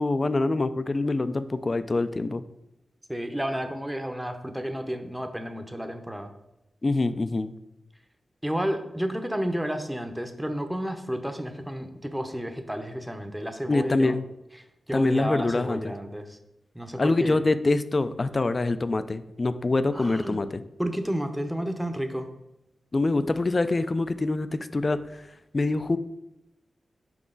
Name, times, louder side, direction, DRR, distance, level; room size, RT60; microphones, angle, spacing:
voice 1, 0.0-2.4 6.8-7.5 13.7-14.2 14.9-15.9 17.0-20.6 22.9-25.3 25.5-26.0, left 2 dB, 40° left, 12 dB, 0.4 m, -25 dB
voice 2, 3.1-6.3 8.4-14.2 14.9-16.4 16.7-17.4 19.9-20.4 20.8-22.3, equal, 5° right, 6 dB, 0.7 m, -31 dB
6.1 x 5.0 x 3.8 m, 0.90 s
cardioid pair, 75°, 0 cm